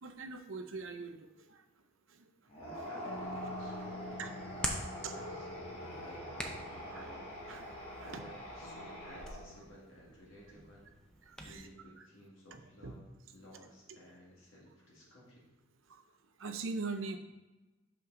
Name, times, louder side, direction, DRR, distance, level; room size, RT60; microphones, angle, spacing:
voice 1, 0.0-1.6 4.2-4.3 5.0-5.1 5.6-5.8 6.4-6.5 6.9-7.1 7.5-7.7 8.0-8.2 9.2-9.3 11.3-11.7 12.8-12.9 13.9-14.0 15.9-16.0 16.4-17.2, right 4 dB, 65° right, 7 dB, 0.6 m, -42 dB
sound 1, 2.5-9.7, equal, 25° left, 1.5 m, -44 dB
voice 2, 2.6-5.5 6.0-7.2 8.0-10.9 11.4-13.0 13.3-15.4, equal, 60° left, -5 dB, 1.9 m, -55 dB
sound 2, 3.0-9.6, left 3 dB, 85° left, 0.6 m, -50 dB
Hands, 3.1-11.6, equal, 5° left, 0.6 m, -46 dB
6.3 x 5.8 x 3.8 m, 1.1 s
head